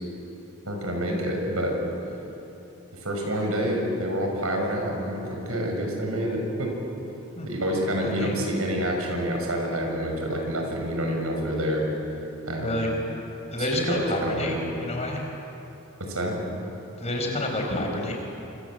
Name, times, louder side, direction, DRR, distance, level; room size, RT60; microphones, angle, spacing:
voice 1, 0.7-1.8 3.0-6.7 7.5-11.8 12.4-12.8 13.6-14.6 16.0-16.4, equal, 80° right, 1 dB, 6.6 m, -27 dB
voice 2, 13.5-15.2 17.0-18.2, left 1 dB, 30° left, 1 dB, 4.8 m, -29 dB
27.0 x 26.5 x 7.9 m, 2.9 s
head